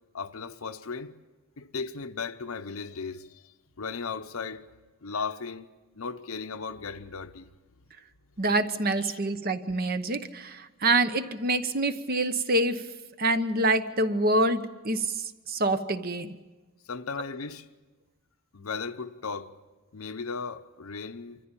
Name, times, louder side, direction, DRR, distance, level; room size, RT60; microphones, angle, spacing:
voice 1, 0.1-1.2 1.6-4.7 5.0-7.5 9.0-9.2 16.8-17.7 18.5-19.5 19.9-21.4, left 5 dB, 75° left, 0.9 m, -36 dB
voice 2, 8.4-12.8 13.2-16.3, right 2 dB, 45° right, 1.0 m, -26 dB
25.0 x 14.5 x 8.9 m
head